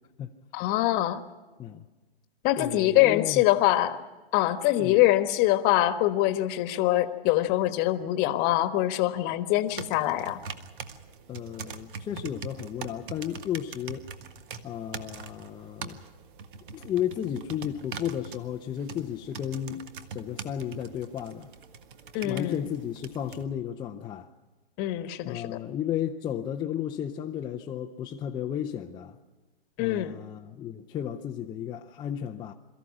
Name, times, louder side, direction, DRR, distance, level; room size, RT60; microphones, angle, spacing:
voice 1, 0.5-1.2 2.4-4.0 4.3-10.4 22.1-22.7 24.8-25.6 29.8-30.1, left 15 dB, 30° left, 1.4 m, -24 dB
voice 2, 2.6-3.4 4.8-5.0 11.3-14.1 14.6-16.0 16.7-19.8 20.1-21.5 22.2-24.3 25.3-29.2 29.8-32.5, left 10 dB, 15° left, 0.7 m, -33 dB
sound 1, 9.7-23.4, right 6 dB, 55° right, 1.6 m, -43 dB
23.0 x 14.0 x 9.7 m
hypercardioid pair, 135°, 30 cm